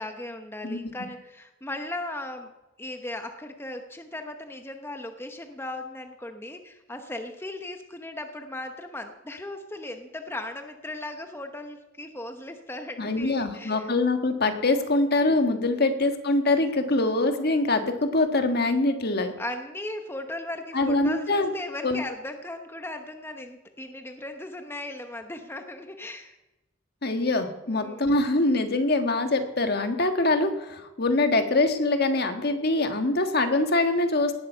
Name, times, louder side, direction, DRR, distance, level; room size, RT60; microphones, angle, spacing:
voice 1, 0.0-2.5 2.8-13.9 15.7-16.0 19.4-26.4 27.7-28.1, left 1 dB, 10° left, 6 dB, 0.9 m, -37 dB
voice 2, 13.0-19.3 20.7-21.5 21.8-22.0 27.0-34.4, left 2 dB, 55° left, 7 dB, 1.6 m, -24 dB
18.5 x 8.9 x 6.9 m, 1.0 s
head